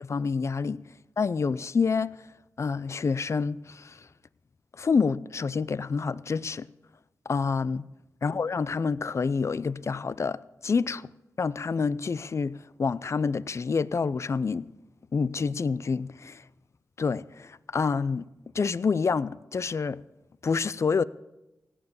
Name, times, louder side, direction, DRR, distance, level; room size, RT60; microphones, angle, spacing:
voice 1, 0.1-0.8 1.2-2.1 2.6-4.0 4.8-6.7 7.3-7.8 8.2-11.1 11.4-14.7 15.1-16.4 17.0-18.2 18.5-20.0 20.4-21.0, left 5 dB, 50° left, 0.5 m, -27 dB
16.0 x 9.7 x 7.1 m
cardioid pair, 55°, 6 cm